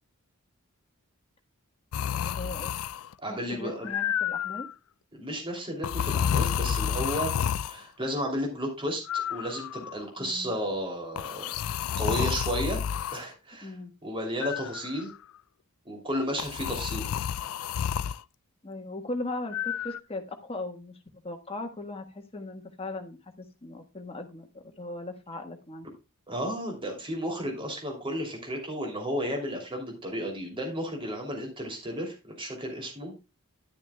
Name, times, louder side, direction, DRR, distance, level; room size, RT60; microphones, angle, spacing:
sound 1, 1.9-3.1 3.8-4.7 5.8-7.8 9.1-10.0 11.2-13.2 14.4-15.1 16.4-18.2 19.5-20.0, left 8 dB, 70° left, 0.4 m, -30 dB
voice 1, 2.1-2.7 3.3-4.7 10.2-10.5 13.6-13.9 18.6-21.0 21.2-25.9, left 2 dB, 25° left, 5 dB, 1.4 m, -38 dB
voice 2, 3.2-3.9 5.1-7.3 7.6-11.6 12.0-12.8 13.1-13.7 14.0-15.1 15.8-17.1 26.3-33.1, equal, 25° right, 1 dB, 2.9 m, -33 dB
10.5 x 9.6 x 2.3 m, 0.27 s
head